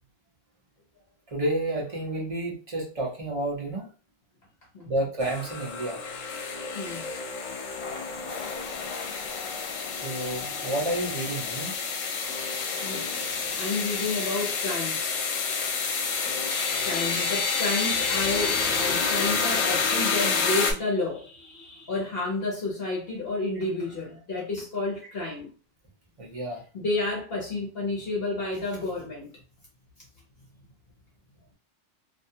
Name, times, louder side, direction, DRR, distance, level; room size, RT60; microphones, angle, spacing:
voice 1, 1.3-3.9 4.9-6.0 10.0-11.7 26.2-26.6, right 1 dB, 35° right, 0.7 m, -30 dB
sound 1, 5.2-20.7, left 5 dB, 80° left, 1.0 m, -29 dB
voice 2, 6.7-7.1 9.7-9.8 12.8-15.2 16.8-25.5 26.7-29.3, left 2 dB, 55° left, 0.9 m, -31 dB
2.6 x 2.2 x 2.7 m
omnidirectional pair, 1.3 m